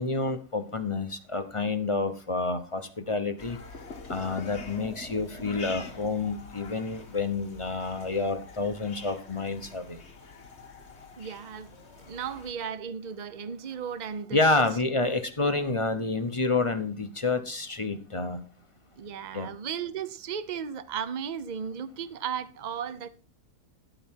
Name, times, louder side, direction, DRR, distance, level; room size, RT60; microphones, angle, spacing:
voice 1, 0.0-2.8 3.1-3.6 4.1-10.0 14.3-18.4 19.3-19.5, left 3 dB, 25° left, 0.8 m, -28 dB
sound 1, 3.4-12.5, left 3 dB, 40° left, 1.6 m, -45 dB
voice 2, 11.2-11.7 12.1-14.7 19.0-23.1, right 7 dB, 45° right, 0.6 m, -35 dB
12.0 x 8.9 x 4.5 m
omnidirectional pair, 1.8 m